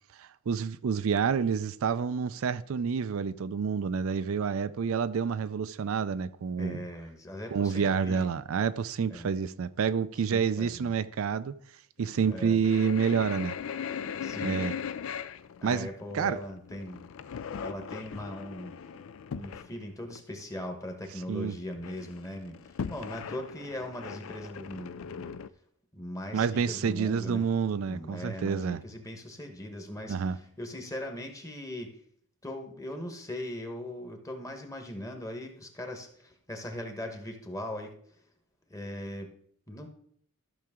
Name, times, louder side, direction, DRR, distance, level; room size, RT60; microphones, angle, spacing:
voice 1, 0.2-6.8 7.5-11.5 12.0-13.5 14.4-14.7 15.6-15.9 16.1-16.4 21.3-21.5 26.3-28.8 30.1-30.4, right 6 dB, 70° right, 0.4 m, -28 dB
voice 2, 6.6-8.3 9.1-9.3 10.3-10.9 12.3-12.6 14.2-14.7 15.6-17.0 17.6-18.7 19.3-25.3 25.9-27.4 27.9-31.9 32.4-37.9 38.7-39.3 39.7-39.9, left 1 dB, 15° left, 1.1 m, -40 dB
sound 1, 12.0-19.7 20.1-20.2 20.6-20.7 20.9-21.4 21.7-25.5, left 7 dB, 65° left, 0.4 m, -39 dB
13.0 x 6.0 x 3.6 m
head